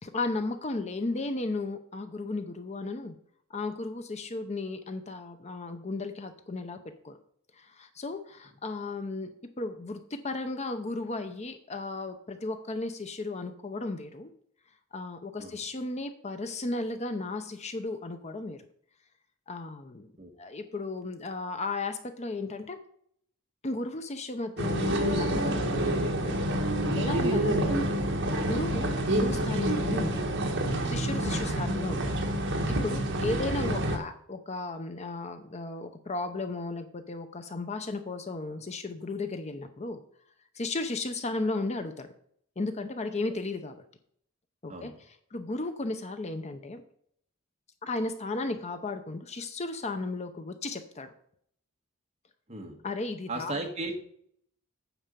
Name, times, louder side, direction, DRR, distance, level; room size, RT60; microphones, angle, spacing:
voice 1, 0.0-3.2 3.5-6.8 7.0-7.2 7.6-9.3 9.6-14.3 14.9-18.7 19.5-20.1 20.4-22.8 23.6-27.8 28.4-30.4 30.8-32.2 32.7-40.0 40.5-42.1 42.6-43.8 44.6-44.9 45.3-46.8 47.8-51.1 52.8-53.5, left 2 dB, 35° left, 8 dB, 0.7 m, -35 dB
sound 1, 24.6-34.0, right 1 dB, 65° right, 1.3 m, -28 dB
voice 2, 53.3-54.0, right 2 dB, 30° right, 2 dB, 1.5 m, -35 dB
9.1 x 4.4 x 6.8 m, 0.65 s
head